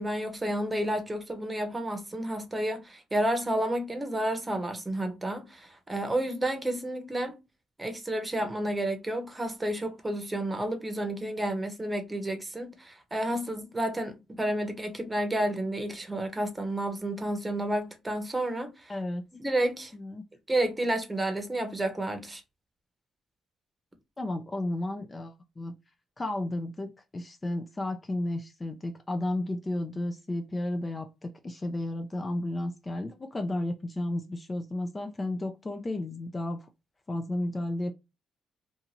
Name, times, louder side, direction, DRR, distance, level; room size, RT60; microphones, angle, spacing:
voice 1, 0.0-7.4 7.8-18.9 19.4-19.9 20.5-22.4, right 1 dB, 20° right, 0.8 m, -31 dB
voice 2, 18.9-19.2 19.9-20.2 24.2-25.7 26.2-36.7 37.1-37.9, left 1 dB, 25° left, 0.4 m, -33 dB
2.6 x 2.4 x 2.8 m
cardioid pair, 90°, 0 cm